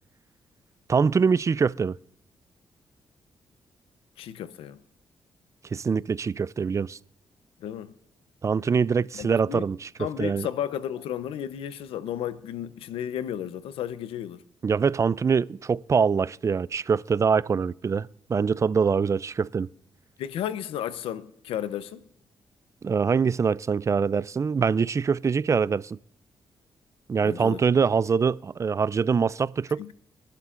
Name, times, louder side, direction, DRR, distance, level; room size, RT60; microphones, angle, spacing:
voice 1, 0.9-2.0 5.7-7.0 8.4-10.5 14.6-19.7 22.8-26.0 27.1-29.8, right 5 dB, 35° right, 0.3 m, -24 dB
voice 2, 4.2-4.8 7.6-7.9 9.1-9.7 10.0-14.4 20.2-22.0 27.2-27.6 29.8-29.9, left 10 dB, 90° left, 0.7 m, -33 dB
23.5 x 11.5 x 2.5 m
cardioid pair, 60°, 9 cm